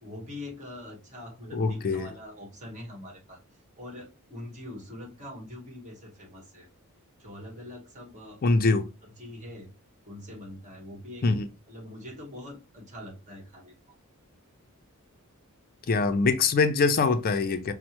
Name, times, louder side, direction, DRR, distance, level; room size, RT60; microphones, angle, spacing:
voice 1, 0.0-3.4 3.8-6.7 7.2-8.4 9.2-9.7 10.0-11.3 11.7-14.0, left 1 dB, 35° right, 1.3 m, -43 dB
voice 2, 1.5-2.1 8.4-8.8 11.2-11.4 15.9-17.7, left 4 dB, 40° left, 0.4 m, -23 dB
5.4 x 2.0 x 2.9 m
head